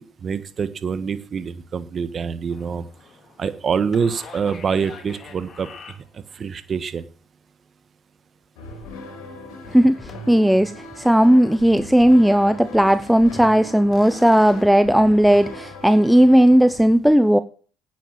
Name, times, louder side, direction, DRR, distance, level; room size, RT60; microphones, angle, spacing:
voice 1, 0.2-2.8 3.4-5.7 6.1-7.0, right 6 dB, 45° right, 12 dB, 1.4 m, -25 dB
sound 1, 2.5-6.4 10.1-10.5 10.9-11.5 11.9-12.0 12.3-15.2, left 5 dB, 40° left, 3.5 m, -45 dB
sound 2, 8.6-16.8, left 2 dB, 75° left, 5.0 m, -39 dB
voice 2, 9.7-17.4, equal, ahead, 12 dB, 0.8 m, -15 dB
10.5 x 9.2 x 7.5 m, 0.41 s
supercardioid pair, 70°, 0 cm